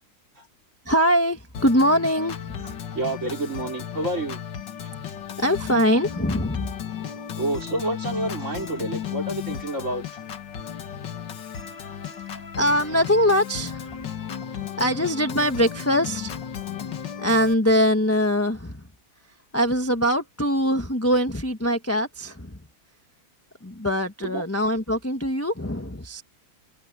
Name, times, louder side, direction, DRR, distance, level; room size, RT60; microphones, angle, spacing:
voice 1, 0.8-2.7 5.4-6.7 12.6-14.0 14.8-16.4 17.2-18.8 19.5-22.6 23.6-26.2, equal, 10° left, 1.2 m, -22 dB
Organ, 1.5-17.5, left 9 dB, 60° left, 2.1 m, -34 dB
voice 2, 2.9-4.4 4.8-4.9 7.4-10.1 24.2-24.4, right 2 dB, 35° right, 4.1 m, -29 dB
omnidirectional pair, 2.3 m